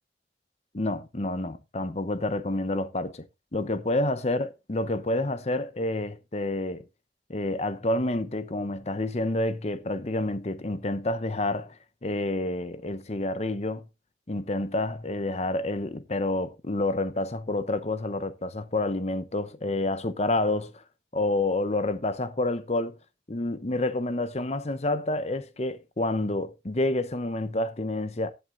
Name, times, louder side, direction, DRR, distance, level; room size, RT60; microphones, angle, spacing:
voice 1, 0.7-3.2 3.5-6.8 7.3-13.9 14.3-20.8 21.1-23.0 23.3-28.3, left 2 dB, 35° left, 0.9 m, -28 dB
18.5 x 7.9 x 2.6 m
head